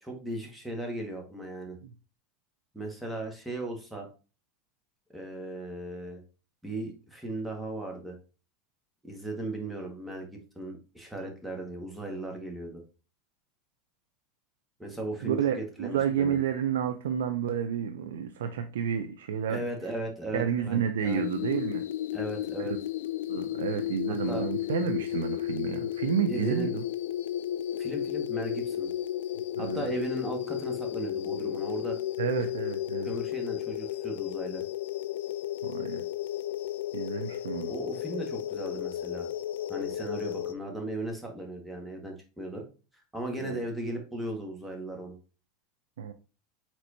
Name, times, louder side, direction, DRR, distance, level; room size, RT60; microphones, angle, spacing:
voice 1, 0.0-1.8 2.7-4.1 5.1-6.2 6.6-8.2 9.0-10.3 10.5-12.8 14.8-16.4 19.5-20.8 21.0-21.2 22.1-22.7 24.1-24.4 26.3-26.7 27.7-28.9 29.6-32.0 33.0-34.6 37.7-39.3 39.7-42.6 43.1-45.1, right 2 dB, 5° right, 1.5 m, -37 dB
voice 2, 15.2-19.6 20.3-21.8 22.6-22.7 23.3-26.8 29.6-29.8 32.2-33.1 35.6-36.0 36.9-37.7 43.4-43.6 46.0-46.1, right 8 dB, 90° right, 0.4 m, -30 dB
sound 1, 21.0-40.5, left 12 dB, 85° left, 0.3 m, -33 dB
4.3 x 4.3 x 2.6 m
supercardioid pair, 120°, 0 cm